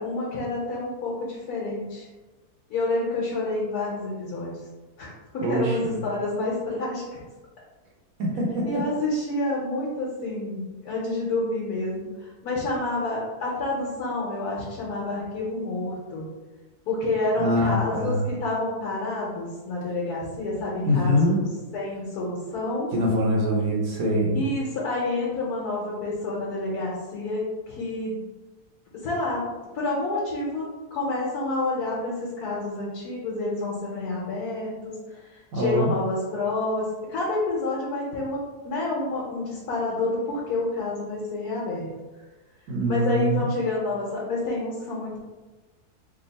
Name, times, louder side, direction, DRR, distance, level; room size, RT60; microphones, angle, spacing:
voice 1, 0.0-2.1 2.7-4.5 5.0-7.0 8.5-16.2 16.9-21.5 21.7-22.9 24.3-28.2 29.0-29.4 29.7-34.9 35.5-41.8 42.9-45.2, left 2 dB, 80° left, -5 dB, 1.4 m, -28 dB
voice 2, 5.4-5.9 8.2-8.8 17.4-18.3 20.8-21.5 22.9-24.5 35.5-35.9 42.7-43.4, equal, 65° right, -2 dB, 1.2 m, -23 dB
3.6 x 2.2 x 4.0 m, 1.2 s
omnidirectional pair, 1.6 m